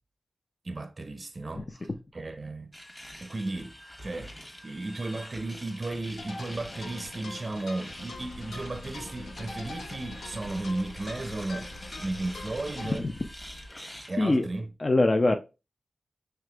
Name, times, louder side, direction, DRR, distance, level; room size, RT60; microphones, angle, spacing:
voice 1, 0.6-2.7 3.2-11.7 12.0-13.1 14.1-14.7, right 2 dB, 45° right, 0.5 m, -35 dB
sound 1, 2.7-14.1, equal, 15° left, 1.1 m, -46 dB
sound 2, 6.2-13.0, left 3 dB, 85° left, 0.6 m, -44 dB
sound 3, 8.1-13.7, equal, 65° left, 1.0 m, -48 dB
voice 2, 13.7-14.5 14.8-15.4, left 2 dB, 45° left, 0.4 m, -25 dB
4.9 x 3.3 x 2.2 m
cardioid pair, 50°, 0 cm